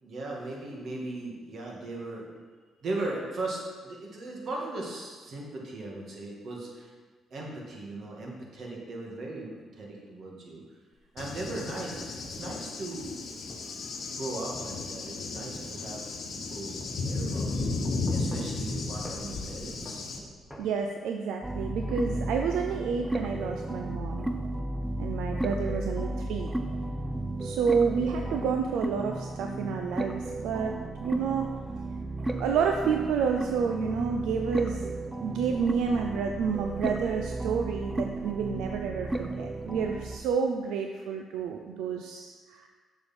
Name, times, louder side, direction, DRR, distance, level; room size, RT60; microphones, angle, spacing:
voice 1, 0.0-2.3 2.8-6.9 7.3-10.6 11.1-13.2 14.2-17.8 18.1-20.1, right 2 dB, 60° right, -2 dB, 1.9 m, -38 dB
sound 1, 10.9-12.5 13.5-13.7 14.5-16.5 16.8-16.9 17.8-18.7 19.0-19.2 19.9-20.6, equal, 5° left, 1.4 m, -46 dB
Cricket / Thunder, 11.2-20.2, left 3 dB, 60° left, 1.0 m, -34 dB
voice 2, 20.6-24.3 25.0-26.5 27.4-30.7 31.0-31.5 32.4-42.7, right 6 dB, 85° right, 3 dB, 0.5 m, -30 dB
sound 2, 21.4-40.2, right 2 dB, 15° right, 0.6 m, -34 dB
6.8 x 6.7 x 4.3 m, 1.5 s
cardioid pair, 90°, 0 cm